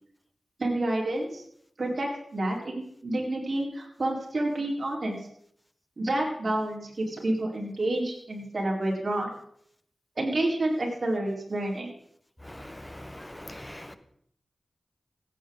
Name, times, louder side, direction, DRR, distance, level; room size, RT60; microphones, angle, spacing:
voice 1, 0.6-1.4 1.8-5.2 6.0-9.3 10.2-11.9, right 1 dB, 55° right, -1 dB, 4.2 m, -29 dB
voice 2, 12.5-14.0, left 1 dB, 15° left, 11 dB, 1.1 m, -42 dB
16.0 x 8.9 x 3.9 m, 0.67 s
cardioid pair, 40°, 0 cm